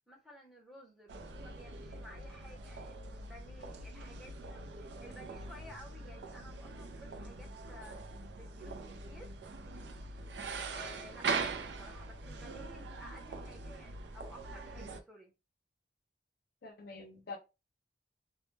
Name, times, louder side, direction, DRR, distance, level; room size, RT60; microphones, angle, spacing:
voice 1, 0.1-9.3 10.7-15.3, left 1 dB, ahead, 0.6 m, -55 dB
sound 1, 1.1-15.0, right 4 dB, 70° right, 0.4 m, -42 dB
voice 2, 16.6-17.4, left 3 dB, 60° left, 0.5 m, -46 dB
2.1 x 2.0 x 3.0 m
head